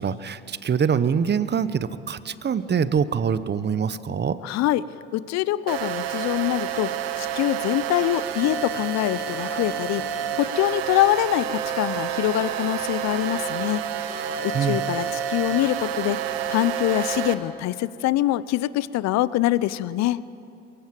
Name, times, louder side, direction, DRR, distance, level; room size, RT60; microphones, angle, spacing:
voice 1, 0.0-4.4 14.5-14.8, right 7 dB, 35° right, 15 dB, 1.0 m, -24 dB
voice 2, 4.4-4.8 5.1-6.9 7.2-10.0 10.3-13.8 14.4-16.2 16.5-20.2, left 15 dB, 60° left, 18 dB, 0.7 m, -24 dB
sound 1, 5.7-17.3, right 8 dB, 85° right, 1.2 m, -29 dB
22.5 x 16.5 x 7.6 m, 2.6 s
hypercardioid pair, 60°, 31 cm